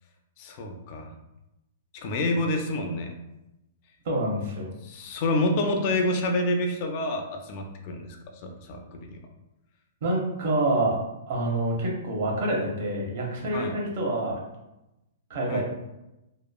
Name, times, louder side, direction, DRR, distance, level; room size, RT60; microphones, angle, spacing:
voice 1, 0.4-1.1 1.9-3.1 4.8-8.2 8.4-9.2 13.5-13.8 15.5-15.6, left 1 dB, 45° left, 3 dB, 0.4 m, -28 dB
voice 2, 4.0-4.7 10.0-11.0 11.3-14.4 15.3-15.6, right 1 dB, 55° right, -1 dB, 0.8 m, -27 dB
2.9 x 2.3 x 2.2 m, 0.93 s
hypercardioid pair, 145°, 0 cm